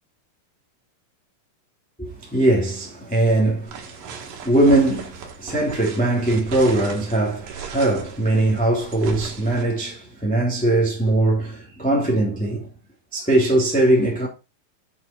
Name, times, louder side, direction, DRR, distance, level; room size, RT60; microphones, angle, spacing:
voice 1, 2.0-12.7 13.1-14.3, right 1 dB, 5° left, 2.2 m, -21 dB
sound 1, 3.7-9.6, right 7 dB, 90° right, 3.1 m, -37 dB
7.4 x 6.7 x 4.5 m
omnidirectional pair, 3.9 m